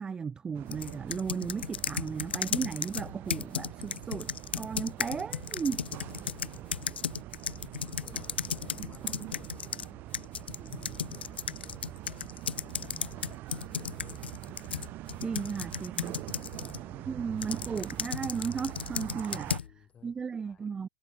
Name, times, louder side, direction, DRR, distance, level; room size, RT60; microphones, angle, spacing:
voice 1, 0.0-5.9 15.2-16.2 17.1-19.5 20.0-20.9, right 6 dB, 15° right, 0.6 m, -35 dB
sound 1, 0.5-19.6, right 17 dB, 35° right, 1.0 m, -44 dB
sound 2, 0.7-9.9 10.1-16.8 17.4-19.7, left 8 dB, 80° left, 0.4 m, -35 dB
voice 2, 6.2-7.1 8.0-10.1 10.6-11.9 12.4-14.3 15.2-15.4 15.8-17.2 19.2-20.7, left 8 dB, 20° left, 3.2 m, -57 dB
hypercardioid pair, 110°, 6 cm